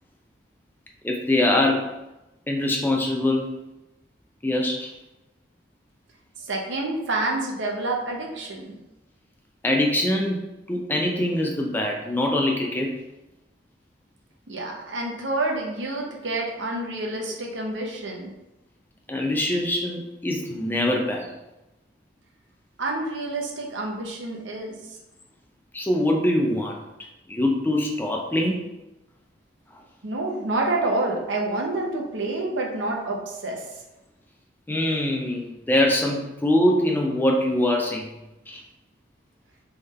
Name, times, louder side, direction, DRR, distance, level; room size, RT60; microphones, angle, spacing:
voice 1, 1.0-2.0 2.5-3.6 4.4-4.9 9.6-12.9 19.1-21.3 25.7-26.8 27.3-28.6 34.7-38.1 38.5-38.6, left 1 dB, 10° left, 1 dB, 0.4 m, -23 dB
voice 2, 6.4-8.7 14.5-18.3 22.8-25.0 30.0-33.8, right 2 dB, 80° right, 0 dB, 0.9 m, -28 dB
3.7 x 3.4 x 4.1 m, 0.96 s
head